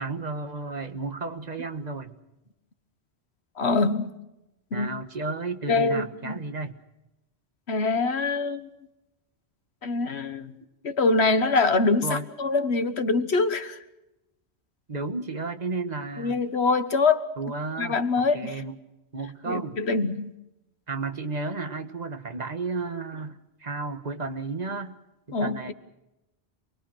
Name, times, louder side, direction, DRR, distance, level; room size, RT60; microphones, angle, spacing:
voice 1, 0.0-2.2 4.7-6.8 12.0-12.3 14.9-16.4 17.4-18.8 19.1-19.8 20.9-25.0 25.3-25.7, right 3 dB, 40° right, 1.5 m, -33 dB
voice 2, 3.6-4.1 4.7-4.9 5.7-6.4 7.7-8.7 9.8-10.5 10.8-13.8 16.2-17.3 17.8-18.6 19.5-20.3 25.3-25.7, left 3 dB, 90° left, 1.6 m, -24 dB
28.0 x 20.5 x 6.3 m
omnidirectional pair, 1.1 m